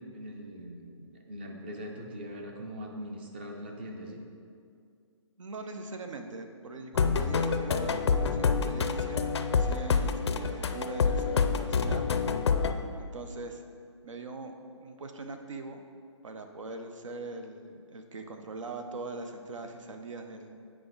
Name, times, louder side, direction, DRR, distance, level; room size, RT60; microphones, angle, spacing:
voice 1, 0.0-4.2, equal, 20° right, 2 dB, 0.5 m, -41 dB
voice 2, 5.4-12.0 12.7-13.6 14.0-15.8 16.2-20.6, right 3 dB, 80° right, 5 dB, 0.8 m, -41 dB
sound 1, 6.9-12.7, left 5 dB, 60° left, 0.4 m, -27 dB
7.9 x 4.9 x 3.9 m, 2.3 s
hypercardioid pair, 175°, 16 cm